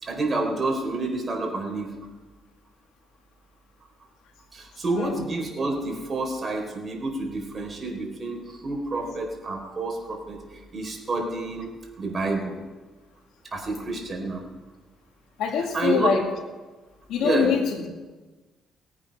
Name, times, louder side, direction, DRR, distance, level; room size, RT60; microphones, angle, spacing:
voice 1, 0.0-1.9 4.5-11.7 12.0-12.5 13.5-14.4 15.7-16.1 17.2-17.6, right 2 dB, 35° right, 1 dB, 4.1 m, -29 dB
voice 2, 15.4-16.2 17.1-17.8, left 7 dB, 90° left, 3 dB, 2.1 m, -24 dB
18.5 x 8.9 x 5.5 m, 1.3 s
cardioid pair, 90°, 0 cm